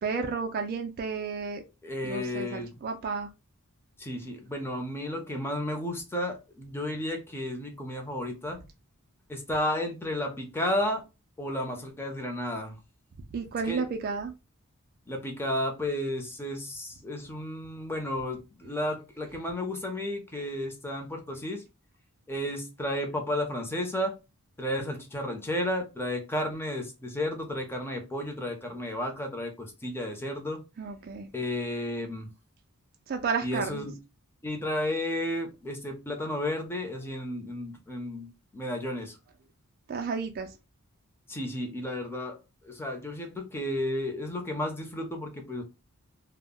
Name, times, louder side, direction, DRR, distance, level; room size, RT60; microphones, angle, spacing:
voice 1, 0.0-1.6 2.0-3.3 13.3-14.3 30.8-31.3 33.1-33.9 39.9-40.5, right 5 dB, 45° right, 0.3 m, -32 dB
voice 2, 1.8-2.8 4.0-8.6 9.3-11.0 11.4-12.8 13.7-13.8 15.1-21.6 22.3-24.1 24.6-30.6 31.3-32.3 33.4-34.0 34.4-39.2 41.3-42.4 42.6-45.6, left 1 dB, 10° left, 0.6 m, -32 dB
2.1 x 2.0 x 3.6 m
head